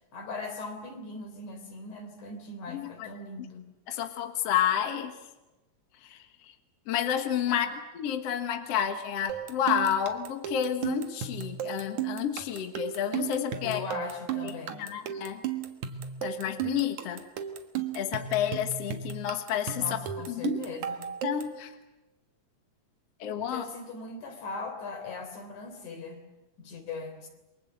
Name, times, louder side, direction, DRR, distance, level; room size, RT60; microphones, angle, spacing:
voice 1, 0.1-3.6 7.5-7.8 13.6-14.8 19.7-21.1 23.3-26.2 26.6-27.3, left 3 dB, 90° left, 6 dB, 5.0 m, -40 dB
voice 2, 2.7-3.1 3.9-5.2 6.1-6.2 6.9-7.7 7.9-13.8 14.8-15.4 16.2-17.2 17.9-20.0 20.3-20.6 21.2-21.7 23.2-23.6, left 9 dB, 60° left, 7 dB, 2.4 m, -30 dB
sound 1, 9.3-21.6, right 9 dB, 80° right, 2.9 m, -35 dB
29.0 x 23.5 x 8.1 m, 1.1 s
omnidirectional pair, 3.3 m